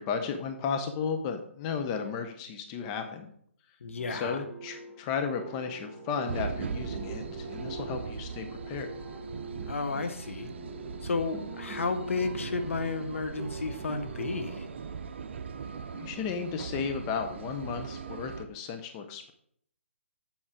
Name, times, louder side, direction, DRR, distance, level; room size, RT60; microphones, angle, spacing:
voice 1, 0.0-3.3 4.1-8.9 15.9-19.3, left 6 dB, 25° left, 6 dB, 0.7 m, -34 dB
voice 2, 3.8-4.4 9.7-10.5 11.0-14.7, left 4 dB, 75° left, 7 dB, 1.1 m, -32 dB
sound 1, 4.0-14.5, right 2 dB, 5° left, 1.9 m, -43 dB
sound 2, 6.3-18.4, right 5 dB, 60° right, 0.7 m, -40 dB
7.4 x 7.1 x 4.9 m, 0.66 s
hypercardioid pair, 145°, 7 cm